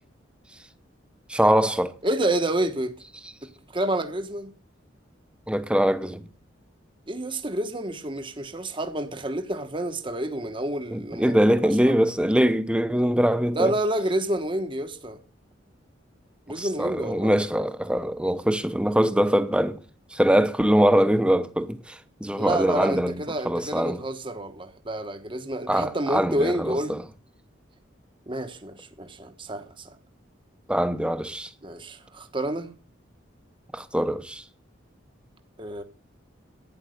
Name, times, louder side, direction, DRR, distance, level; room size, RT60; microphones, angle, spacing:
voice 1, 1.3-1.9 5.5-6.3 10.9-13.7 16.5-19.8 20.1-24.0 25.7-27.0 30.7-31.5 33.7-34.4, equal, 5° right, 0.9 m, -23 dB
voice 2, 2.0-2.9 3.7-4.5 7.1-11.9 13.5-15.2 16.5-17.3 22.4-26.9 28.3-29.9 31.6-32.7 35.6-35.8, right 1 dB, 25° right, 1.1 m, -29 dB
11.5 x 9.9 x 6.5 m
head